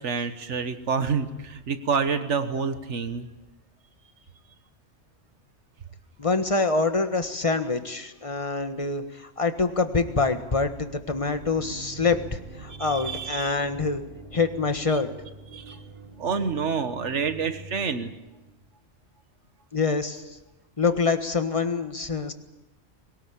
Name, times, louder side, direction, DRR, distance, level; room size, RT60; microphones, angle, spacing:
voice 1, 0.0-3.3 12.8-13.5 15.5-15.8 16.2-18.1, right 5 dB, 85° right, 9 dB, 1.7 m, -28 dB
voice 2, 6.2-14.0 14.3-15.1 19.7-20.4 20.8-22.3, left 4 dB, 30° left, 8 dB, 1.5 m, -25 dB
sound 1, 10.8-18.7, right 3 dB, 55° right, 2.4 m, -45 dB
22.0 x 18.5 x 8.5 m, 1.0 s
omnidirectional pair, 1.2 m